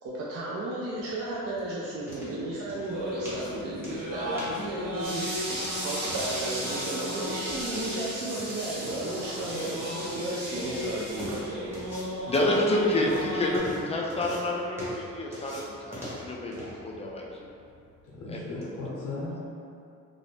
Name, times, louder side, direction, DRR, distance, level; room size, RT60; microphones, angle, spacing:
voice 1, 0.0-5.3 5.8-11.7, right 1 dB, 50° right, -6 dB, 0.5 m, -34 dB
sound 1, 0.9-18.7, equal, 10° right, 0.9 m, -44 dB
sound 2, 2.9-13.6, equal, 85° right, 0.7 m, -36 dB
sound 3, 5.0-11.4, right 1 dB, 35° right, 1.2 m, -36 dB
voice 2, 12.3-15.6 15.9-16.6 16.8-17.3 18.3-18.6, left 1 dB, 20° left, -2 dB, 0.3 m, -28 dB
voice 3, 18.1-19.4, left 2 dB, 85° left, -7 dB, 0.6 m, -36 dB
2.5 x 2.0 x 3.1 m, 2.6 s
cardioid pair, 90°, 30 cm